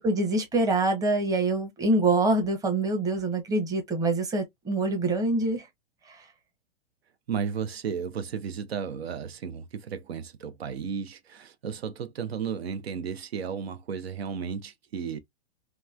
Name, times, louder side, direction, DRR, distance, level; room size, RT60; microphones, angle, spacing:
voice 1, 0.0-5.7 6.1-6.2, right 2 dB, 10° right, 0.7 m, -25 dB
voice 2, 7.3-15.2, right 7 dB, 85° right, 0.6 m, -34 dB
2.9 x 2.2 x 2.3 m
hypercardioid pair, 125°, 30 cm